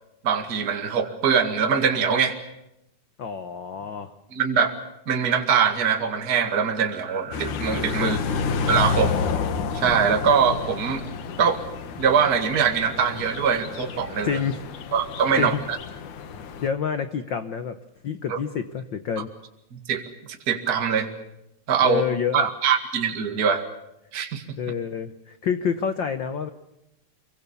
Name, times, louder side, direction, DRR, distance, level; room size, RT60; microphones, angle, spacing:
voice 1, 0.2-2.4 4.3-4.7 5.1-8.2 8.7-9.1 9.7-11.0 11.4-11.6 12.0-14.4 14.9-15.8 18.3-18.4 19.7-20.0 20.5-21.1 21.7-22.0 22.3-23.7 24.1-24.4, right 6 dB, 35° right, 5 dB, 2.2 m, -22 dB
voice 2, 3.2-4.1 8.0-8.1 14.2-14.6 15.3-15.6 16.6-17.7 18.0-19.3 21.8-22.5 24.6-26.5, left 7 dB, 65° left, 10 dB, 1.1 m, -27 dB
sound 1, 7.3-16.7, left 5 dB, 85° left, 3.1 m, -30 dB
26.0 x 23.5 x 7.0 m, 0.85 s
omnidirectional pair, 3.4 m